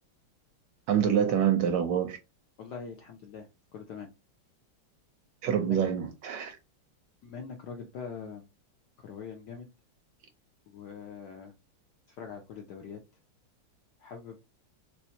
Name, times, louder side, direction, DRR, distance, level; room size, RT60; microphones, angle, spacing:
voice 1, 0.9-2.2 5.4-6.6, right 8 dB, 75° right, 1.0 m, -26 dB
voice 2, 2.6-4.1 5.6-5.8 7.2-8.4 9.0-9.7 10.7-11.5 12.1-13.0 14.0-14.6, left 6 dB, 75° left, 0.9 m, -43 dB
3.4 x 3.1 x 2.7 m
omnidirectional pair, 2.3 m